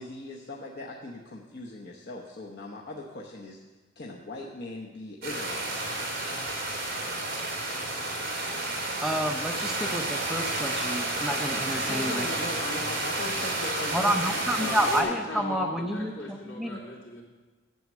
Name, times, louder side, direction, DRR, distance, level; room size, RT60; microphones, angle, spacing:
voice 1, 0.0-3.6 4.0-5.7 11.8-14.4, left 2 dB, 55° left, -2 dB, 0.9 m, -39 dB
sound 1, 5.2-15.0, right 2 dB, 50° right, 2.9 m, -31 dB
voice 2, 9.0-12.3 12.7-12.8 13.9-16.8, equal, ahead, 3 dB, 0.6 m, -29 dB
voice 3, 14.5-17.2, left 2 dB, 80° left, -5 dB, 3.4 m, -38 dB
9.3 x 7.9 x 7.4 m, 1.3 s
head